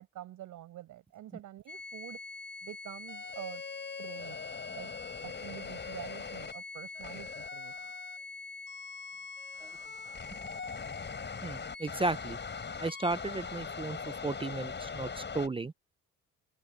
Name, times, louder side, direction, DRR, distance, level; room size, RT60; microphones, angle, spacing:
voice 1, 0.0-2.2 2.6-3.6 4.0-4.4 4.7-4.9 5.2-7.7, right 13 dB, 85° right, 6.9 m, -46 dB
sound 1, 1.7-15.5, left 5 dB, 35° left, 5.0 m, -41 dB
voice 2, 11.4-12.4 12.8-14.0 14.2-15.7, right 3 dB, 20° right, 0.6 m, -34 dB
cardioid pair, 90°, 30 cm